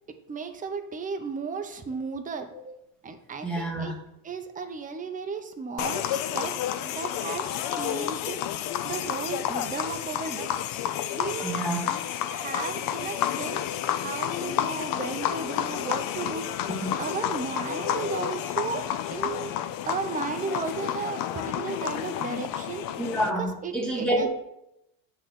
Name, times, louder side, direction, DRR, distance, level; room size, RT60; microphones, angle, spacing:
voice 1, 0.3-2.5 3.0-3.9 4.2-6.5 6.8-8.4 8.8-10.5 11.1-11.6 12.3-16.5 17.0-18.8 19.1-19.5 19.8-22.8 23.4-24.3, right 5 dB, 20° right, 6 dB, 0.7 m, -34 dB
voice 2, 3.4-3.9 11.4-12.0 23.0-24.3, right 1 dB, ahead, -2 dB, 1.7 m, -28 dB
sound 1, 5.8-23.3, left 11 dB, 55° left, 0.5 m, -30 dB
8.1 x 3.9 x 6.2 m, 0.83 s
cardioid pair, 150°, 42 cm